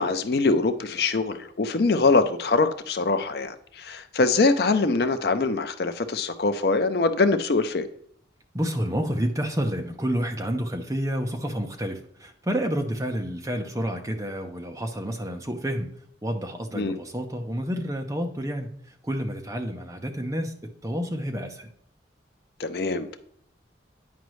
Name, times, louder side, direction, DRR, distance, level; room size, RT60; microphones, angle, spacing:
voice 1, 0.0-7.9 16.8-17.0 22.6-23.2, left 3 dB, 55° left, 9 dB, 0.5 m, -23 dB
voice 2, 8.5-15.9 16.2-18.7 19.0-20.5 20.8-21.7, equal, 15° right, 3 dB, 0.7 m, -29 dB
9.3 x 5.1 x 3.1 m, 0.67 s
head